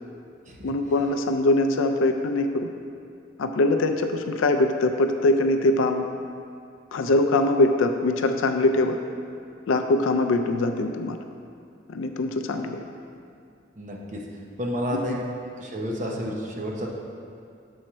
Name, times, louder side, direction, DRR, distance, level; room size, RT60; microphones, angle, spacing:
voice 1, 0.6-2.7 3.4-6.1 6.9-9.0 9.7-11.2 11.9-12.8 14.9-15.0, left 2 dB, 80° left, 6 dB, 0.4 m, -22 dB
voice 2, 13.8-14.2 14.6-15.1 15.6-16.9, equal, 40° right, -1 dB, 0.7 m, -30 dB
6.3 x 4.3 x 6.0 m, 2.4 s
head